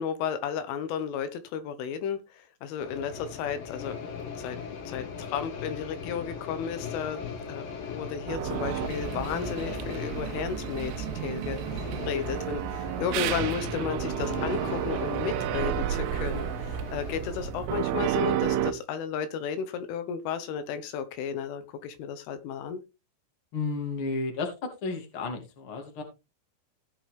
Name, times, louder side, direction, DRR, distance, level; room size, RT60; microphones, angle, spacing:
voice 1, 0.0-4.0 4.4-4.6 4.9-22.8, left 7 dB, 80° left, 10 dB, 3.6 m, -33 dB
sound 1, 2.8-17.5, left 6 dB, 55° left, 3.1 m, -39 dB
sound 2, 8.3-18.7, right 10 dB, 85° right, 3.5 m, -31 dB
voice 2, 23.5-26.0, left 3 dB, 35° left, 4 dB, 2.4 m, -32 dB
17.5 x 5.9 x 3.4 m, 0.27 s
omnidirectional pair, 5.7 m